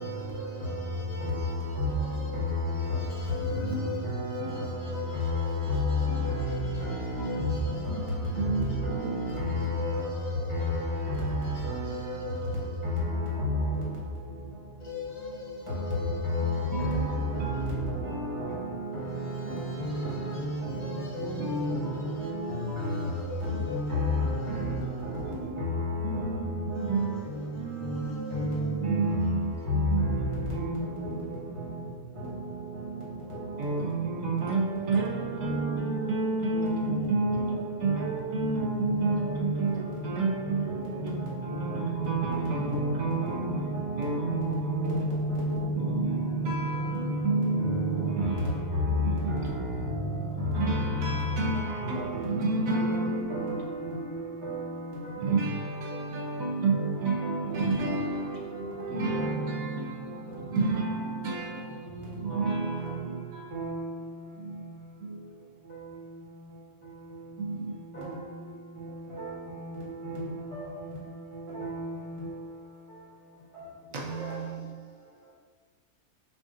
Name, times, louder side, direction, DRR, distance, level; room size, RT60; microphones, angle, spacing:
voice 1, 0.0-13.5 14.8-17.8 19.0-25.8 26.7-29.3 29.6-29.7, left 5 dB, 65° left, 1.0 m, -43 dB
voice 2, 3.3-4.1 4.4-4.6 6.1-6.6 7.2-9.7 16.3-18.6 21.4-23.0 23.6-23.8 24.5-25.0 25.3-31.8 33.6-45.1 45.7-50.1 50.4-53.6 55.2-58.4 58.9-64.0 64.4-64.7 65.0-65.3 67.4-67.9 73.9-74.7, right 3 dB, 65° right, 1.1 m, -32 dB
voice 3, 4.0-4.4 5.1-5.3 5.7-5.8 6.2-7.3 8.4-9.4 10.5-10.9 11.6-12.0 13.4-13.5 16.2-21.3 21.7-22.5 22.8-23.0 23.4-23.5 23.9-25.7 26.1-26.3 28.3-28.6 29.0-29.4 30.0-30.8 31.0-31.1 32.2-32.4 33.3-33.4 34.9-35.1 35.4-35.7 37.3-37.5 39.1-39.6 40.7-40.8 41.7-41.9 42.2-42.9 43.2-44.1 44.8-45.7 47.2-47.3 49.3-49.8 51.6-52.4 52.7-53.0 53.3-54.0 54.4-54.8 57.8-57.9 58.5-59.4 63.5-63.9 70.0-70.3 70.5-70.6 71.6-71.9, equal, 20° right, 1.3 m, -32 dB
4.7 x 2.5 x 3.7 m
omnidirectional pair, 1.6 m